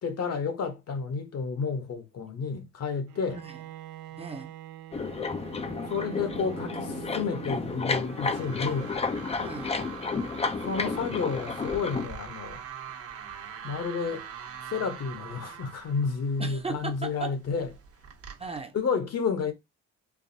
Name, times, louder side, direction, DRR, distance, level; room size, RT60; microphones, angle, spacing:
voice 1, 0.0-3.4 5.9-9.0 10.6-12.6 13.6-14.3 14.6-17.7 18.7-19.5, left 5 dB, 55° left, 1.0 m, -31 dB
Bowed string instrument, 3.1-8.4, right 14 dB, 75° right, 0.5 m, -44 dB
voice 2, 4.2-4.5 9.4-9.8 16.4-17.3 18.4-18.8, right 4 dB, 20° right, 0.7 m, -36 dB
sound 1, 4.9-12.1, left 4 dB, 20° left, 0.4 m, -32 dB
sound 2, 7.6-18.6, right 8 dB, 50° right, 0.9 m, -43 dB
4.6 x 2.5 x 2.7 m
cardioid pair, 90°, 30 cm